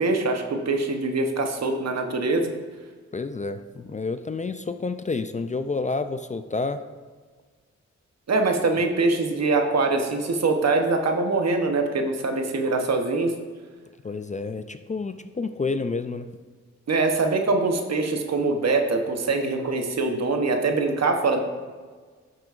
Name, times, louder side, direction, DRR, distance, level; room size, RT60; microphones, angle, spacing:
voice 1, 0.0-2.5 8.3-13.3 16.9-21.4, right 3 dB, 60° right, 4 dB, 1.0 m, -23 dB
voice 2, 3.1-6.8 14.0-16.3, left 4 dB, 25° left, 9 dB, 0.4 m, -29 dB
11.5 x 6.0 x 2.5 m, 1.5 s
cardioid pair, 65°, 29 cm